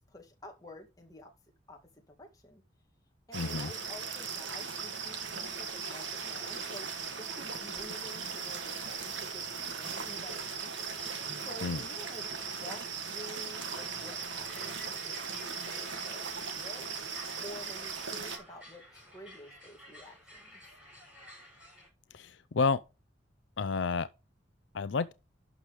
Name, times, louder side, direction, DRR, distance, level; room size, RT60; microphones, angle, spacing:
voice 1, 0.1-1.3 1.7-1.8 2.1-2.6 3.3-6.9 7.2-10.7 11.4-12.3 12.6-17.0 17.4-20.6, left 1 dB, 20° left, 2.1 m, -50 dB
voice 2, 3.3-3.7 11.6-11.8 22.1-22.8 23.6-24.1 24.7-25.1, left 4 dB, 75° left, 0.5 m, -30 dB
sound 1, 3.3-18.4, right 5 dB, 80° right, 1.9 m, -38 dB
sound 2, 12.9-21.9, equal, 5° right, 5.9 m, -53 dB
12.0 x 6.2 x 3.2 m
head